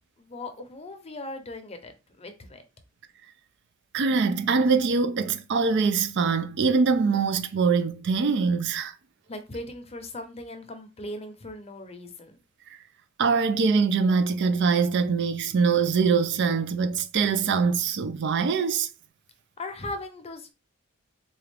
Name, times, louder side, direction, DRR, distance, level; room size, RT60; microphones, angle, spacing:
voice 1, 0.2-2.6 9.3-12.4 19.6-20.5, left 2 dB, 30° left, 0.7 m, -38 dB
voice 2, 3.9-8.9 13.2-18.9, right 5 dB, 55° right, 0.4 m, -23 dB
4.0 x 2.4 x 3.3 m
head